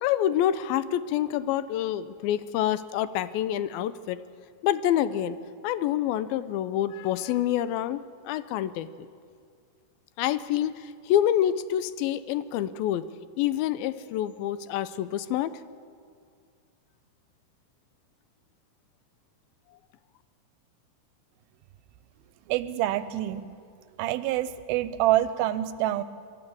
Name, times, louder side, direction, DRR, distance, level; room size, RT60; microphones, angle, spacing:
voice 1, 0.0-4.2 4.6-5.4 5.6-8.9 10.2-13.0 13.4-15.5, left 11 dB, 80° left, 15 dB, 2.4 m, -27 dB
voice 2, 22.5-23.5 24.0-26.0, right 14 dB, 85° right, 14 dB, 2.5 m, -26 dB
23.5 x 13.0 x 8.6 m, 2.2 s
omnidirectional pair, 4.3 m